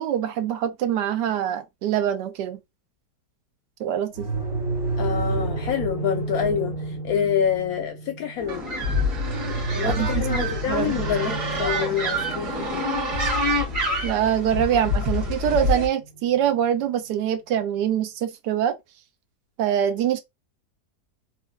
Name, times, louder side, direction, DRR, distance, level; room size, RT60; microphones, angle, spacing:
voice 1, 0.0-2.6 3.8-4.3 9.8-11.0 14.0-18.7 19.6-20.2, right 10 dB, 85° right, 1.2 m, -24 dB
sound 1, 4.1-16.9, right 3 dB, 45° right, 2.1 m, -32 dB
voice 2, 5.0-8.6 9.7-12.8 14.5-14.6 15.3-15.4, left 8 dB, 70° left, 0.9 m, -27 dB
sound 2, 8.5-15.9, left 1 dB, 70° right, 1.8 m, -26 dB
3.8 x 2.7 x 2.2 m
omnidirectional pair, 1.8 m